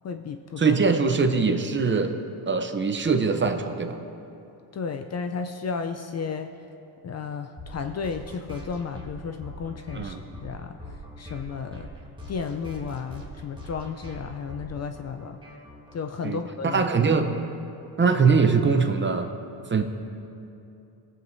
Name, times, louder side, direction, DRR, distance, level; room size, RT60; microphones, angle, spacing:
voice 1, 0.0-0.8 4.7-6.5 7.0-10.1 10.4-10.8 11.2-11.9 12.3-15.4 15.9-16.9, left 5 dB, 40° left, 7 dB, 0.4 m, -33 dB
voice 2, 0.6-2.2 2.5-4.0 9.9-10.2 16.2-17.3 18.0-19.3 19.7-19.8, right 5 dB, 25° right, 6 dB, 0.7 m, -22 dB
sound 1, 7.6-16.0, equal, 10° right, 1.6 m, -42 dB
18.0 x 7.3 x 2.6 m, 2.8 s
cardioid pair, 100°, 45 cm